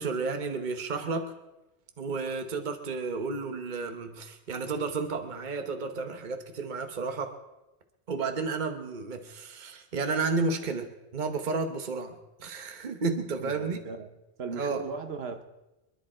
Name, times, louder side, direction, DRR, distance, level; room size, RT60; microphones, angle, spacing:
voice 1, 0.0-1.3 2.0-7.4 8.1-13.8 14.6-14.8, right 4 dB, 45° right, 6 dB, 1.3 m, -32 dB
voice 2, 13.4-14.1 14.4-15.4, right 5 dB, 70° right, 7 dB, 1.3 m, -37 dB
26.5 x 10.5 x 4.4 m, 1.0 s
omnidirectional pair, 1.1 m